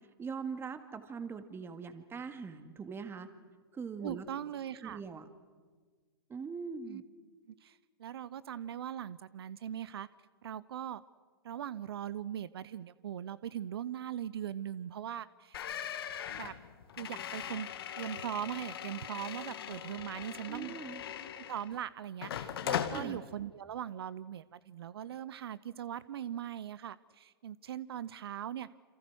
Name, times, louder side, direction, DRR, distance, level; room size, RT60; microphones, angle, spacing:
voice 1, 0.2-3.3 3.7-4.3 4.8-5.2 6.3-7.0 20.4-21.0 22.9-23.2, right 5 dB, 20° right, 9 dB, 2.1 m, -41 dB
voice 2, 4.0-5.0 6.9-7.0 7.5-10.1 10.4-11.0 11.4-15.6 16.3-16.5 17.0-17.7 18.0-20.8 21.3-28.7, right 10 dB, 75° right, 18 dB, 0.7 m, -40 dB
sound 1, 15.5-21.8 22.2-23.0, left 10 dB, 70° left, 2.1 m, -39 dB
28.5 x 26.5 x 6.3 m, 1.5 s
hypercardioid pair, 120°, 13 cm